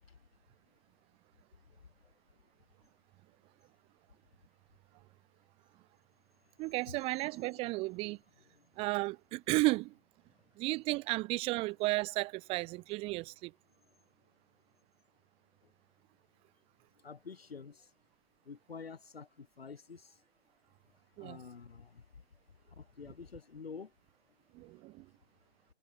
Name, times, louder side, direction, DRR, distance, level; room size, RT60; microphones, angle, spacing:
voice 1, 6.6-8.2 8.8-9.9 10.6-13.5 21.2-21.4 24.5-25.1, right 22 dB, 20° right, 1.6 m, -33 dB
voice 2, 17.0-17.9 18.5-20.2 21.2-22.0 22.8-23.9, left 5 dB, 70° left, 1.8 m, -48 dB
figure-of-eight pair, 140°, 31 cm